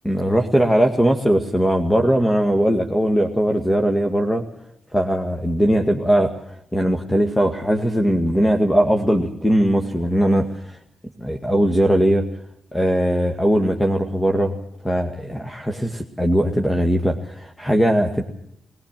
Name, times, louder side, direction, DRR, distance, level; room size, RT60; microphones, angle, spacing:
voice 1, 0.1-4.4 4.9-10.8 11.2-12.3 12.7-14.6 14.8-18.2, equal, 10° left, 3 dB, 2.1 m, -19 dB
20.0 x 19.5 x 7.5 m, 0.74 s
supercardioid pair, 50°, 0 cm